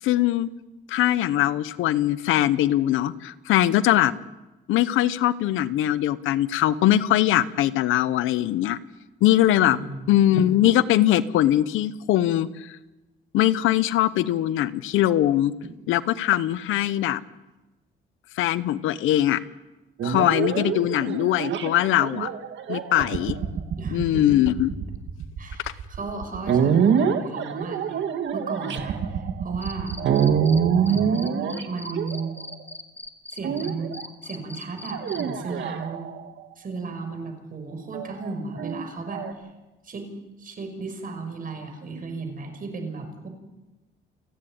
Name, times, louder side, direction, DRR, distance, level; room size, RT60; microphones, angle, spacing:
voice 1, 0.0-0.5 0.9-4.1 4.7-8.8 9.2-9.8 10.1-12.8 13.3-15.5 15.9-17.2 18.4-19.4 20.0-22.3 22.7-23.4 23.9-24.7 25.6-25.7, left 13 dB, 90° left, 16 dB, 0.9 m, -21 dB
voice 2, 9.6-10.2 15.6-15.7 23.8-24.4 25.4-28.0 28.3-30.0 30.8-32.3 33.3-33.9 34.2-36.1 36.6-39.3 39.8-40.1 40.4-43.3, right 3 dB, 45° right, 6 dB, 5.9 m, -34 dB
sound 1, 20.0-32.6 33.4-34.0 34.9-36.4 37.9-39.3, right 7 dB, 70° right, 2.0 m, -25 dB
Cricket, 29.6-30.6 30.9-35.2, left 1 dB, 10° left, 2.4 m, -39 dB
29.5 x 10.0 x 8.9 m, 1.1 s
cardioid pair, 90°, 20 cm